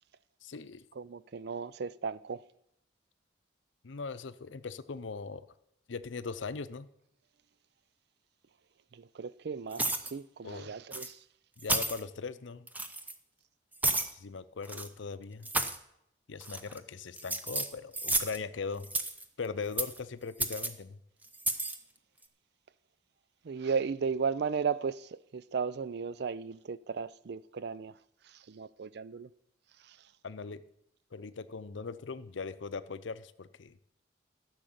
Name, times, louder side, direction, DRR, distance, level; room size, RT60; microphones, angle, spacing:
voice 1, 0.4-0.9 3.8-5.5 5.9-6.9 10.4-10.7 11.6-12.7 14.0-15.5 16.3-18.9 19.4-21.0 30.2-30.6 31.1-33.8, left 4 dB, 80° left, 0.6 m, -40 dB
voice 2, 1.0-2.4 8.9-11.2 23.4-28.0 28.2-29.3 29.8-30.0, right 5 dB, 60° right, 0.4 m, -35 dB
sound 1, 9.7-10.1 10.9-11.1 11.6-12.0 12.7-13.1 13.8-14.1 14.6-14.9 15.4-15.8 16.4-16.8 17.2-18.4 18.8-19.2 19.8-20.0 20.4-20.7 21.3-21.8, right 2 dB, 10° right, 0.7 m, -32 dB
12.5 x 6.5 x 7.9 m
head